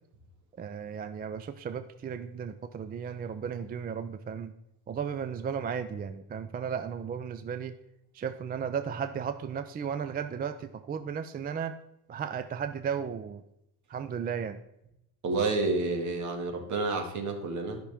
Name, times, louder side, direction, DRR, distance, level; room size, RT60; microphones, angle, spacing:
voice 1, 0.6-4.5 4.9-7.7 8.1-11.8 12.1-13.4 13.9-14.6, right 7 dB, 25° right, 10 dB, 0.4 m, -35 dB
voice 2, 15.2-17.8, right 3 dB, 50° right, 3 dB, 2.0 m, -29 dB
12.5 x 5.9 x 3.5 m, 0.83 s
cardioid pair, 120°, 38 cm